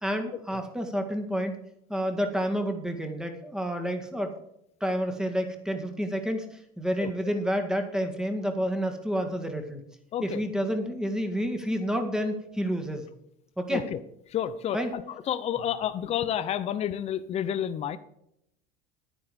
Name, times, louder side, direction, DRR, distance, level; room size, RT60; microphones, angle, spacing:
voice 1, 0.0-1.6 1.9-4.4 4.8-9.8 10.2-13.0 13.6-13.8 14.7-14.9, equal, 5° right, 4 dB, 1.9 m, -29 dB
voice 2, 10.1-10.4 13.7-14.0 14.3-18.0, left 10 dB, 35° left, 12 dB, 0.7 m, -30 dB
10.5 x 10.0 x 5.2 m, 0.77 s
supercardioid pair, 120°, 18 cm